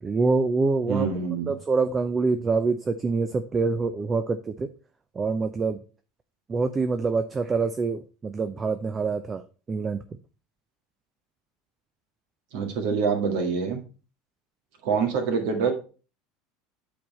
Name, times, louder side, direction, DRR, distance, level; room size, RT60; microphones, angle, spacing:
voice 1, 0.0-1.1 1.5-4.7 5.2-5.8 6.5-9.4 9.7-10.0, right 4 dB, 25° right, 9 dB, 0.6 m, -25 dB
voice 2, 0.9-1.5 12.5-13.8 14.8-15.7, right 5 dB, 65° right, 4 dB, 1.8 m, -25 dB
8.5 x 3.9 x 4.2 m, 0.35 s
hypercardioid pair, 75°, 0 cm